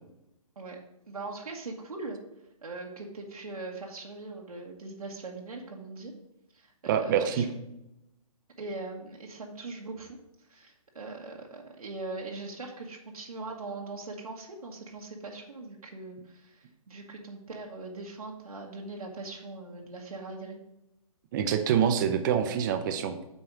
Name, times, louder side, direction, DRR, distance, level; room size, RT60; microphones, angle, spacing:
voice 1, 1.1-2.2 2.6-6.1 6.5-7.5 8.6-10.2 10.5-20.6, right 3 dB, 85° right, -1 dB, 1.5 m, -41 dB
voice 2, 6.9-7.5 21.3-23.2, right 8 dB, 35° right, 8 dB, 0.8 m, -26 dB
7.9 x 4.3 x 4.8 m, 0.90 s
hypercardioid pair, 140°, 19 cm